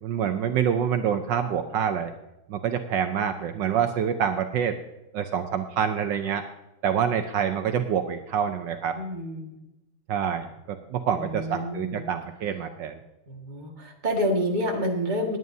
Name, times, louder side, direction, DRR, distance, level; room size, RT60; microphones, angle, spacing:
voice 1, 0.0-2.1 2.5-4.8 5.1-6.4 6.8-9.0 10.1-13.0, right 8 dB, 70° right, 7 dB, 1.3 m, -26 dB
voice 2, 8.9-9.6 11.1-12.1 13.3-15.4, equal, 25° right, 1 dB, 1.7 m, -28 dB
20.5 x 9.1 x 2.7 m, 0.96 s
omnidirectional pair, 2.2 m